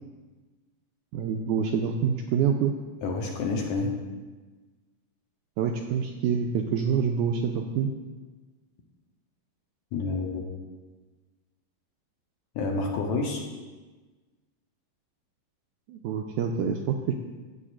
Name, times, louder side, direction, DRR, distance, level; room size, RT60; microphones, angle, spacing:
voice 1, 1.1-2.7 5.6-7.9 15.9-17.1, right 7 dB, 85° right, 3 dB, 1.8 m, -26 dB
voice 2, 3.0-4.0 9.9-10.4 12.6-13.4, left 3 dB, 70° left, 0 dB, 1.9 m, -29 dB
14.5 x 8.9 x 2.5 m, 1.3 s
omnidirectional pair, 4.0 m